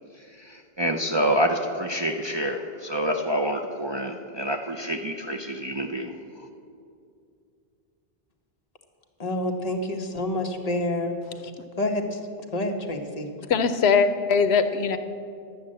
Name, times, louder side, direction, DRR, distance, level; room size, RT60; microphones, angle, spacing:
voice 1, 0.4-6.1, equal, 35° right, 2 dB, 0.5 m, -27 dB
voice 2, 9.2-11.1 11.8-12.2 12.5-13.3, left 1 dB, 40° left, 3 dB, 1.1 m, -28 dB
voice 3, 13.5-15.0, left 5 dB, 80° left, 10 dB, 0.9 m, -21 dB
12.0 x 7.3 x 7.6 m, 2.4 s
omnidirectional pair, 1.1 m